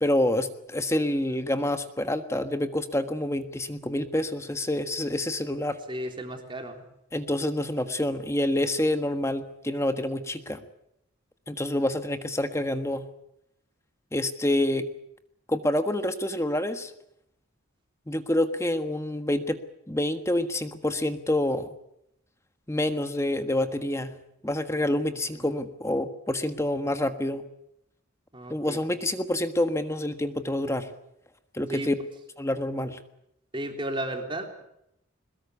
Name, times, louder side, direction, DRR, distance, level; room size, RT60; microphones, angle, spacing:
voice 1, 0.0-5.8 7.1-10.6 11.5-13.0 14.1-14.8 15.5-16.9 18.1-19.6 19.9-21.7 22.7-24.1 24.4-27.4 28.5-30.9 31.5-31.9 32.4-33.0, left 1 dB, 15° left, 9 dB, 1.4 m, -27 dB
voice 2, 5.9-6.8 25.1-25.5 28.3-28.8 31.7-31.9 33.5-34.6, right 1 dB, 25° right, 4 dB, 3.4 m, -34 dB
22.5 x 21.0 x 8.2 m, 0.79 s
head